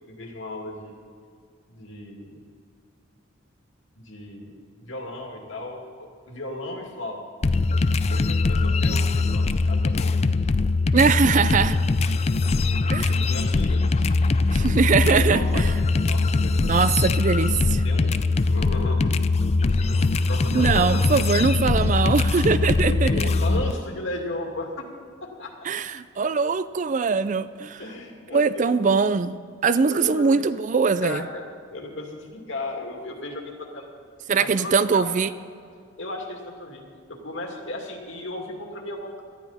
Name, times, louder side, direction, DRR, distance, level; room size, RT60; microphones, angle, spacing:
voice 1, 0.1-1.0 1.7-2.4 4.0-7.2 7.9-10.1 11.3-11.6 12.4-16.9 17.8-18.2 18.5-19.3 19.6-21.2 22.8-24.8 25.2-25.5 27.8-29.0 29.9-30.5 30.8-31.4 31.7-33.9 34.3-35.1 36.0-39.2, left 1 dB, 65° left, 1 dB, 2.4 m, -36 dB
sound 1, 7.4-23.7, left 3 dB, 30° left, 0.4 m, -22 dB
voice 2, 10.9-11.8 12.9-13.1 14.5-15.7 16.6-17.8 20.5-23.1 25.7-27.8 28.3-29.4 29.6-31.3 34.3-35.3, right 5 dB, 40° right, 14 dB, 0.4 m, -22 dB
18.5 x 13.0 x 4.2 m, 2.3 s
head